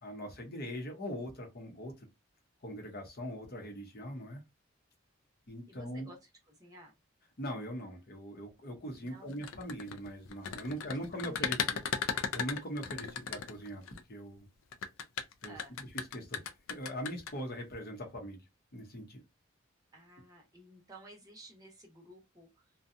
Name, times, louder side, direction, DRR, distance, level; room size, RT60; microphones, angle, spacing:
voice 1, 0.0-1.9 2.6-4.4 5.5-6.1 7.4-11.6 12.3-13.8 14.1-14.5 15.4-15.6 15.9-16.4 16.7-18.4 18.7-19.2, equal, 45° left, 0.8 m, -41 dB
voice 2, 5.7-6.9 9.0-9.4 10.8-11.0 11.2-11.8 15.4-15.8 19.9-22.7, right 1 dB, 15° right, 0.7 m, -54 dB
sound 1, 9.3-14.0 14.7-17.3, left 7 dB, 75° left, 0.4 m, -36 dB
2.6 x 2.2 x 2.5 m
head